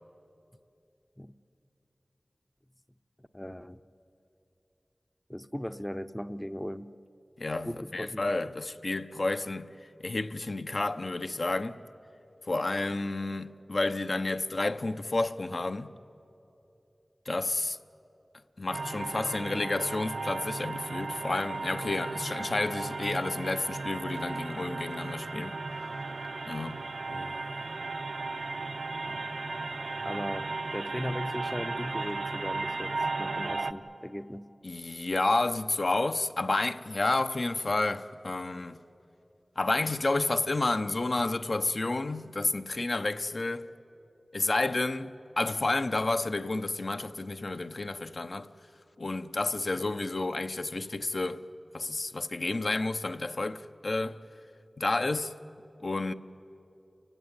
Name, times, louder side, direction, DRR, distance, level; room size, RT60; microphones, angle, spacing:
voice 1, 3.3-3.8 5.3-6.9 7.7-8.5 27.1-27.4 29.1-29.2 30.0-34.5 49.8-49.9, equal, 10° left, 0.6 m, -38 dB
voice 2, 7.4-9.7 10.0-11.8 12.5-15.9 17.3-17.8 18.6-25.6 26.5-26.8 34.6-38.8 39.6-43.7 44.3-48.5 49.0-51.4 51.7-54.2 54.8-55.4 55.8-56.1, left 2 dB, 60° left, 0.7 m, -30 dB
sound 1, 18.7-33.7, right 3 dB, 80° right, 0.7 m, -35 dB
29.0 x 16.0 x 9.6 m
wide cardioid pair, 65°, 0 cm